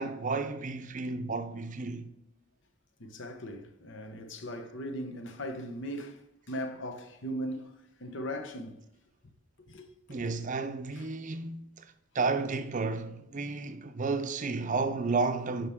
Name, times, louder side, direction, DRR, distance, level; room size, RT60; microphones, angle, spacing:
voice 1, 0.0-2.1 10.1-15.7, right 4 dB, 40° right, 0.6 m, -32 dB
voice 2, 3.0-7.7 8.0-8.8 9.7-10.2 11.0-11.1, equal, 65° left, 1.0 m, -39 dB
9.8 x 5.8 x 3.6 m
head